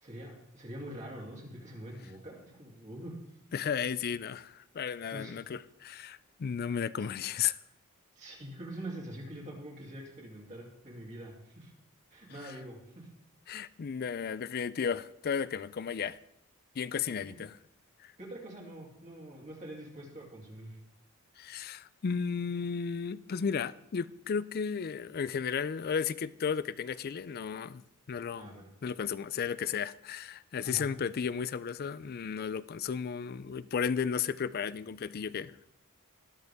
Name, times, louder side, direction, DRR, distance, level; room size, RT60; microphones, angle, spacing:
voice 1, 0.0-3.2 5.1-5.3 8.1-11.7 12.1-13.1 17.2-17.4 18.2-20.8 28.3-28.7 30.6-30.8, right 1 dB, 35° right, 2.9 m, -45 dB
voice 2, 3.5-7.6 12.4-12.5 13.5-16.2 16.8-17.6 18.0-18.1 21.4-27.8 28.1-28.5 28.8-35.7, left 6 dB, 45° left, 0.4 m, -34 dB
20.0 x 6.7 x 3.6 m
head